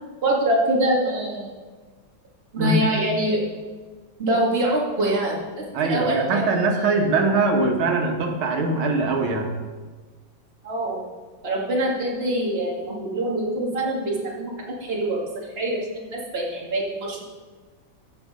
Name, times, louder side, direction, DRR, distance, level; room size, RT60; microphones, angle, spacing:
voice 1, 0.2-1.5 2.5-3.4 4.2-6.4 6.8-6.9 10.6-11.0 11.4-14.5 14.8-15.3 15.6-17.2, right 1 dB, 30° right, -3 dB, 2.2 m, -24 dB
voice 2, 5.7-9.5, right 3 dB, 90° right, 3 dB, 2.1 m, -22 dB
14.0 x 6.3 x 5.0 m, 1.4 s
omnidirectional pair, 2.2 m